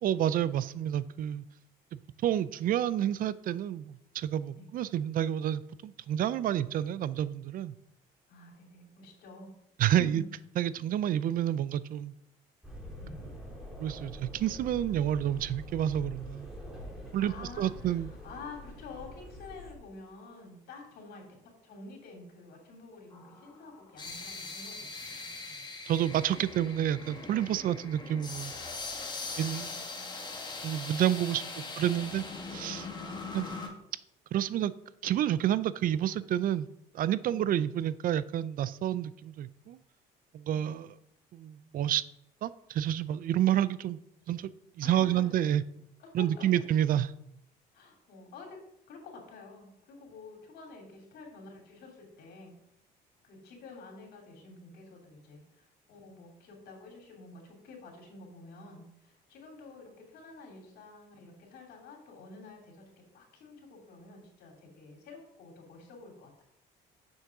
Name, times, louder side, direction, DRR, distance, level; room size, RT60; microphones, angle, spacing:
voice 1, 0.0-1.4 1.9-7.7 9.8-10.2 10.6-12.1 13.8-16.8 17.1-18.1 25.9-28.5 29.4-29.7 30.6-32.2 32.5-32.9 33.3-33.5 34.3-34.7 35.0-36.7 36.9-39.8 40.3-40.9 41.3-42.0 42.4-44.0 44.3-44.5 44.8-45.6 46.1-47.1, right 11 dB, 55° right, 17 dB, 0.4 m, -29 dB
voice 2, 8.3-9.5 9.9-10.2 13.0-13.2 17.2-25.3 29.2-30.3 32.9-33.4 37.2-37.5 44.8-45.4 46.0-46.5 47.7-48.6 48.9-52.5 53.2-62.8 63.1-66.4, left 3 dB, 75° left, 1 dB, 3.0 m, -49 dB
sound 1, 12.6-19.7, equal, ahead, 2.7 m, -45 dB
sound 2, 23.1-33.7, left 3 dB, 25° left, 1.9 m, -41 dB
7.2 x 6.5 x 6.0 m, 0.80 s
cardioid pair, 110°, 17 cm